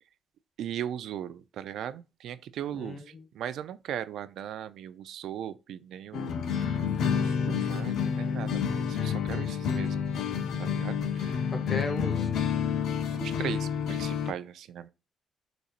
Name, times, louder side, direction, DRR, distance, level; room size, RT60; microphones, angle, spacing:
voice 1, 0.6-10.0 10.6-11.4 13.1-14.9, right 10 dB, 75° right, 0.3 m, -38 dB
voice 2, 2.7-3.2 11.5-12.3, left 3 dB, 35° left, 1.0 m, -35 dB
sound 1, 6.1-14.3, left 7 dB, 75° left, 0.6 m, -29 dB
4.1 x 2.6 x 2.4 m
cardioid pair, 90°, 0 cm